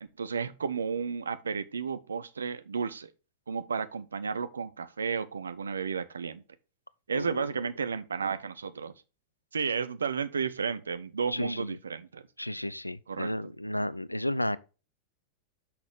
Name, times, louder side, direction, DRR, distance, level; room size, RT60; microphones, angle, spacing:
voice 1, 0.0-3.1 3.5-6.4 7.1-8.9 9.5-12.2 13.1-13.5, right 6 dB, 70° right, 0.7 m, -33 dB
voice 2, 7.1-7.5 11.3-11.8 12.4-14.6, left 1 dB, 85° left, 0.4 m, -32 dB
6.3 x 5.8 x 5.3 m
figure-of-eight pair, 90°, 0 cm